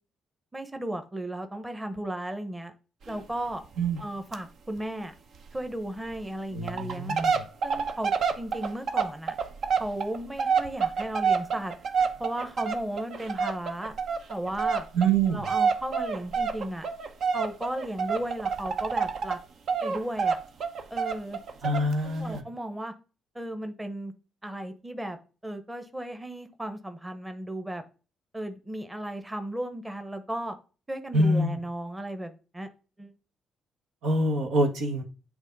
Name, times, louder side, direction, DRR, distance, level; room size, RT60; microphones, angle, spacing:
voice 1, 0.5-2.7 3.1-3.6 4.0-5.1 5.5-7.2 7.6-9.3 9.8-11.7 12.2-13.9 14.3-14.9 15.3-16.9 17.3-19.4 19.8-20.4 20.9-22.9 23.3-24.1 24.4-25.2 25.4-27.8 28.3-30.6 30.9-32.7 33.0-33.1, right 1 dB, 10° right, 7 dB, 1.0 m, -35 dB
sound 1, 3.0-3.2 3.5-3.6 3.8-4.0 4.3-4.4 4.8-4.9 5.4-5.5 6.1-6.2 6.6-19.4 19.7-21.9 22.3-22.4, right 5 dB, 65° right, 0.9 m, -28 dB
voice 2, 6.5-7.4 14.9-15.4 21.6-22.4 31.1-31.6 34.0-35.0, right 2 dB, 85° right, 2 dB, 1.7 m, -25 dB
8.2 x 3.4 x 5.3 m, 0.34 s
cardioid pair, 90°, 0 cm